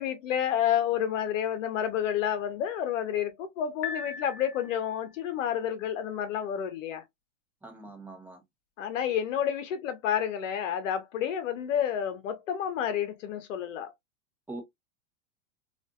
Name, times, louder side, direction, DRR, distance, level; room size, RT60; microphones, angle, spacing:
voice 1, 0.0-7.0 8.8-13.9, left 9 dB, 75° left, 0.9 m, -30 dB
Piano, 3.8-5.1, left 6 dB, 35° left, 0.8 m, -39 dB
voice 2, 7.6-8.4 14.5-14.6, right 2 dB, 5° right, 0.8 m, -42 dB
2.6 x 2.5 x 2.2 m
hypercardioid pair, 125°, 39 cm